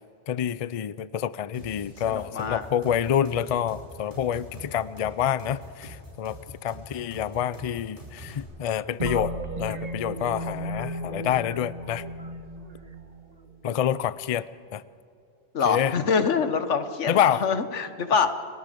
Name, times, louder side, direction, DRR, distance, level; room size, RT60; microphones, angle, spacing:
voice 1, 0.3-9.3 9.6-12.0 13.6-14.5 14.7-14.8 15.6-15.9 17.1-17.4, left 9 dB, 50° left, 17 dB, 0.4 m, -27 dB
sound 1, 1.5-8.4, right 1 dB, 70° right, 6.5 m, -44 dB
voice 2, 2.1-2.7 15.5-18.3, left 5 dB, 90° left, 10 dB, 1.5 m, -25 dB
sound 2, 9.0-13.7, right 1 dB, 35° right, 1.5 m, -35 dB
29.5 x 18.5 x 5.2 m, 2.6 s
omnidirectional pair, 1.2 m